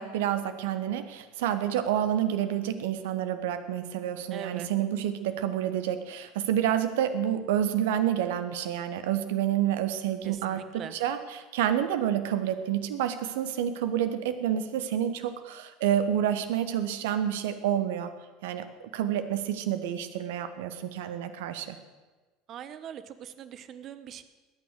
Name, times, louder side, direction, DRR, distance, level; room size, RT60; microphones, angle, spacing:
voice 1, 0.0-18.1 18.4-21.8, right 10 dB, 65° right, 11 dB, 1.2 m, -29 dB
voice 2, 4.3-4.7 10.2-10.9 22.5-24.2, right 9 dB, 45° right, 13 dB, 1.1 m, -41 dB
20.5 x 9.4 x 6.5 m, 1.3 s
figure-of-eight pair, 70°, 0 cm